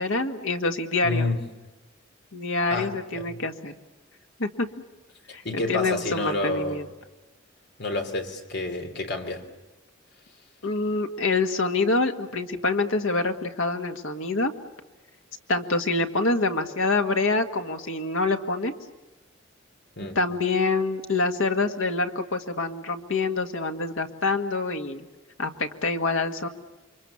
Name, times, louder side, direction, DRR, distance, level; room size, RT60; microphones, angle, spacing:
voice 1, 0.0-1.3 2.3-3.7 4.4-4.7 5.3-6.8 10.6-14.5 15.5-18.7 20.2-25.1 25.4-26.5, left 3 dB, 80° left, 5 dB, 1.9 m, -26 dB
voice 2, 1.0-1.4 2.7-3.4 5.4-6.8 7.8-9.4 20.0-20.2, left 2 dB, 55° left, 5 dB, 3.2 m, -29 dB
29.0 x 24.5 x 7.2 m, 1.1 s
head